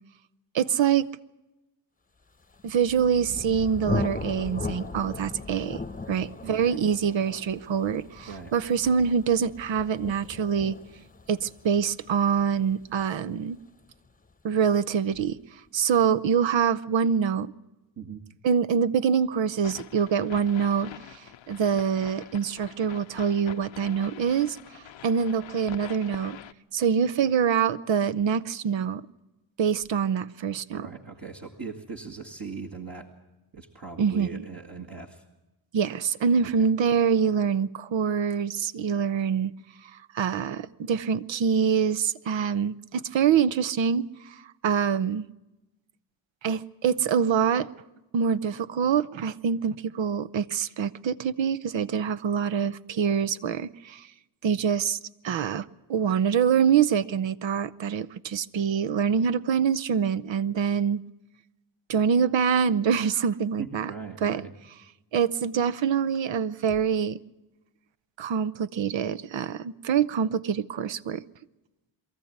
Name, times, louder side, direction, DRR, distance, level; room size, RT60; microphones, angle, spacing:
voice 1, 0.5-1.1 2.6-5.8 6.1-10.8 11.3-13.6 14.4-15.4 15.7-17.5 18.4-26.4 26.7-29.0 29.6-30.8 34.0-34.4 35.7-39.5 40.1-45.3 46.4-47.7 48.1-54.1 54.4-55.0 55.2-61.0 61.9-63.9 64.2-64.4 65.1-67.2 68.2-71.2, right 7 dB, 70° right, 0.8 m, -25 dB
Thunder, 2.5-14.1, left 3 dB, 15° left, 1.0 m, -38 dB
voice 2, 6.4-6.8 8.3-8.5 18.0-18.2 30.7-33.1 33.5-35.2 36.4-36.7 63.6-64.5, right 5 dB, 50° right, 2.0 m, -39 dB
sound 1, 19.6-26.5, left 11 dB, 70° left, 0.8 m, -45 dB
23.0 x 14.0 x 9.5 m
cardioid pair, 50°, 47 cm